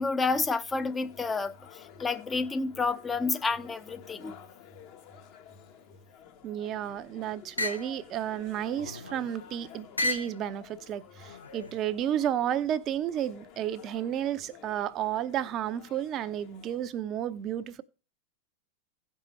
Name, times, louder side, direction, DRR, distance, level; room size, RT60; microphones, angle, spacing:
voice 1, 0.0-1.5 2.0-4.4, left 4 dB, 15° left, 0.7 m, -29 dB
sound 1, 0.7-16.9, left 8 dB, 45° left, 1.2 m, -52 dB
voice 2, 6.4-17.8, right 10 dB, 35° right, 0.7 m, -32 dB
sound 2, 6.5-7.0 7.6-7.9 8.7-9.3 10.0-10.4 11.2-11.8, left 2 dB, 85° left, 0.7 m, -34 dB
16.5 x 5.5 x 3.1 m
figure-of-eight pair, 90°, 0 cm